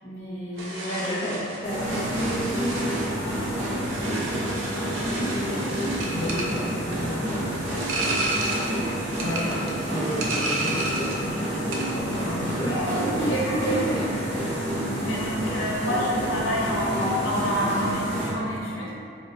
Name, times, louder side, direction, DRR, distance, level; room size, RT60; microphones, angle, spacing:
voice 1, 0.0-1.4 12.7-14.4 15.0-18.9, equal, 85° left, -5 dB, 0.8 m, -28 dB
sound 1, 0.6-11.3 11.5-12.0, right 2 dB, 90° right, 0.6 m, -32 dB
voice 2, 1.0-2.9 3.7-4.0 4.4-4.6 4.9-7.8 8.4-12.7 13.2-13.3 13.9-14.3, equal, 25° left, -7 dB, 0.5 m, -33 dB
sound 2, 1.6-18.3, equal, 35° right, 1.2 m, -29 dB
3.3 x 2.1 x 4.3 m, 2.5 s
head